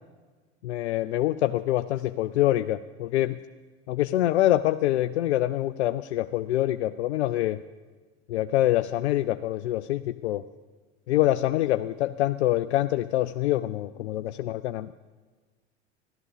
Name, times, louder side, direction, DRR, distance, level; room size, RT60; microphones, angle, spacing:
voice 1, 0.6-3.4 3.9-7.6 8.3-10.4 11.1-14.9, left 14 dB, 75° left, 11 dB, 0.5 m, -25 dB
14.5 x 12.5 x 6.7 m, 1.4 s
hypercardioid pair, 75°, 34 cm